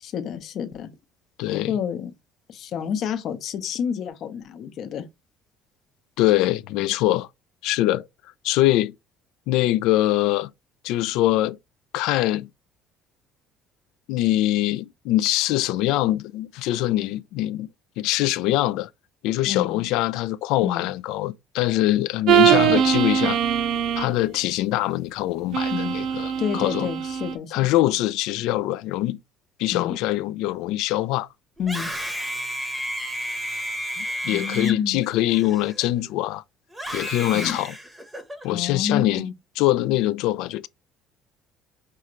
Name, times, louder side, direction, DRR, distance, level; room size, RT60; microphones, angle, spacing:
voice 1, 0.0-0.9 1.5-2.1 2.5-5.1 19.4-19.9 20.6-20.9 22.4-22.8 25.7-26.0 26.4-27.8 29.7-30.0 31.6-31.9 34.2-35.0 37.3-37.6 38.5-39.3, left 8 dB, 50° left, 0.7 m, -29 dB
voice 2, 1.4-1.7 6.2-7.3 7.6-8.0 8.4-8.9 9.5-10.5 10.8-11.6 11.9-12.5 14.1-17.7 18.0-18.9 19.2-23.4 24.0-26.9 27.5-29.2 29.6-31.3 34.0-36.4 36.9-37.7 38.4-39.2 39.6-40.7, left 15 dB, 80° left, 0.3 m, -23 dB
sound 1, 22.3-24.2 25.5-27.4, right 10 dB, 60° right, 0.6 m, -21 dB
Screaming, 31.6-36.1 36.7-38.5, equal, 5° right, 0.8 m, -32 dB
5.4 x 2.5 x 3.0 m
cardioid pair, 150°, 0 cm